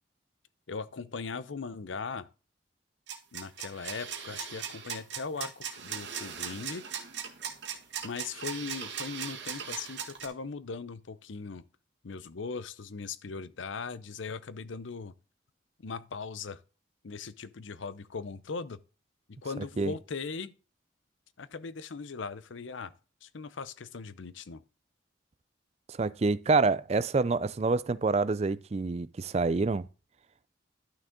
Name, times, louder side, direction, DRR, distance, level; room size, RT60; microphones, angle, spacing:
voice 1, 0.7-2.3 3.3-6.9 8.0-11.6 12.0-15.1 15.8-16.6 17.0-18.8 19.3-20.5 21.4-22.9 23.2-24.6, left 4 dB, 85° left, 0.6 m, -39 dB
sound 1, 3.1-10.3, right 7 dB, 70° right, 1.7 m, -38 dB
voice 2, 25.9-29.9, right 3 dB, 35° right, 0.4 m, -27 dB
11.5 x 6.4 x 3.7 m
head